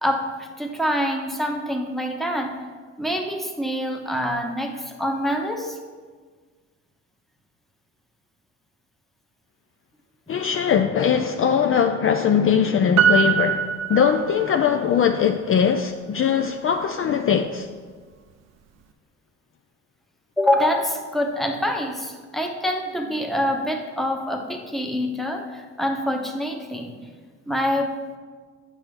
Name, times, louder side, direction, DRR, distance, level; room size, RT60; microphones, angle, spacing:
voice 1, 0.0-2.6 3.0-5.8 20.4-27.0 27.5-28.0, equal, ahead, 0.9 m, -25 dB
voice 2, 10.3-17.7, left 7 dB, 45° left, 0.4 m, -21 dB
Piano, 13.0-14.8 15.1-15.2, right 8 dB, 60° right, 0.5 m, -22 dB
8.2 x 5.8 x 3.7 m
cardioid pair, 90°, 30 cm